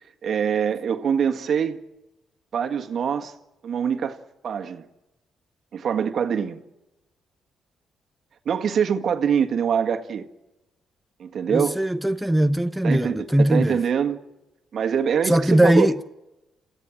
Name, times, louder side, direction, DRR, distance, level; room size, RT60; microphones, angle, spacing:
voice 1, 0.2-1.8 2.5-3.3 3.6-4.2 4.4-4.8 5.7-6.6 8.5-10.3 11.2-11.8 12.8-14.2 14.7-15.9, right 7 dB, 60° right, 1.8 m, -24 dB
voice 2, 11.5-13.8 15.2-16.0, right 1 dB, 5° right, 0.9 m, -20 dB
28.0 x 16.0 x 7.3 m
cardioid pair, 90°, 0 cm